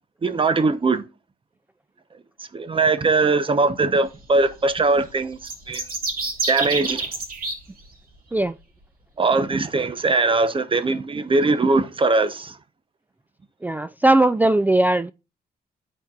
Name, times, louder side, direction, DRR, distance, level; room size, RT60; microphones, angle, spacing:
voice 1, 0.2-1.0 2.5-5.4 5.7-5.8 6.5-7.1 9.2-12.6, right 3 dB, 35° right, 0.8 m, -20 dB
sound 1, 5.4-7.6, right 3 dB, 65° right, 2.5 m, -27 dB
voice 2, 13.6-15.1, right 2 dB, 10° right, 0.3 m, -18 dB
12.5 x 4.5 x 2.4 m
cardioid pair, 75°, 16 cm